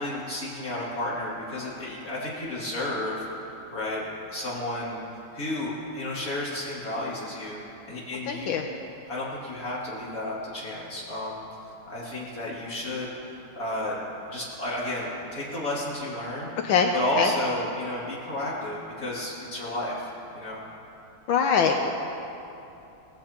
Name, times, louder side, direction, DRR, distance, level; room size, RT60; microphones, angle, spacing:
voice 1, 0.0-3.3 3.7-4.0 4.3-5.0 5.3-7.6 7.9-8.6 9.1-11.4 11.9-13.1 13.6-14.0 14.3-16.5 16.9-20.6, left 1 dB, 40° left, -7 dB, 3.2 m, -32 dB
voice 2, 8.3-8.6 16.6-16.9 17.2-17.3 21.3-21.9, left 6 dB, 70° left, 3 dB, 1.3 m, -22 dB
18.0 x 15.0 x 2.9 m, 2.9 s
omnidirectional pair, 2.4 m